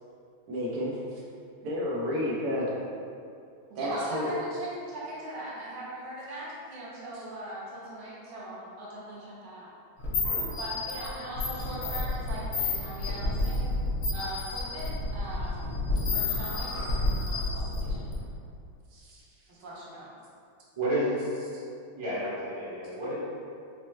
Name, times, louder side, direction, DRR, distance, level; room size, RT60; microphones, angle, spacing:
voice 1, 0.5-1.0 1.6-2.7 3.8-4.3 18.9-19.2, left 1 dB, 85° right, -5 dB, 1.7 m, -31 dB
voice 2, 3.7-9.7 10.6-13.8 14.1-15.7 16.1-18.1 19.5-20.1, right 1 dB, 60° right, -7 dB, 1.4 m, -40 dB
sound 1, 10.0-18.3, left 2 dB, 80° left, 2.1 m, -30 dB
voice 3, 20.7-21.2 21.9-23.1, right 1 dB, 25° right, -10 dB, 0.6 m, -30 dB
5.9 x 2.2 x 3.1 m, 2.4 s
omnidirectional pair, 2.4 m